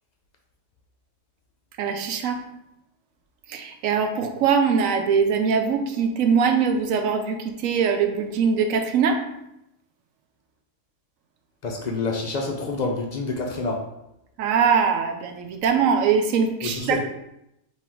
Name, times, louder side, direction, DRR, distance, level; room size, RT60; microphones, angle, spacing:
voice 1, 1.8-2.4 3.5-7.4 7.6-9.2 14.4-17.0, right 6 dB, 80° right, 5 dB, 1.0 m, -22 dB
voice 2, 11.6-13.8 16.6-17.0, left 3 dB, 55° left, 1 dB, 0.4 m, -27 dB
3.7 x 3.1 x 4.4 m, 0.84 s
omnidirectional pair, 1.4 m